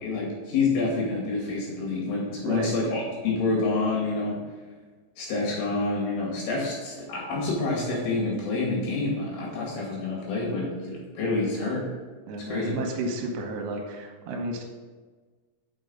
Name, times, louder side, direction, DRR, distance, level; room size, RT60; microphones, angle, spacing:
voice 1, 0.0-4.4 5.2-11.9 12.4-12.8, left 3 dB, 70° left, -3 dB, 4.0 m, -28 dB
voice 2, 12.3-14.6, right 2 dB, 85° right, 2 dB, 3.3 m, -32 dB
6.4 x 6.2 x 5.3 m, 1.4 s
omnidirectional pair, 4.9 m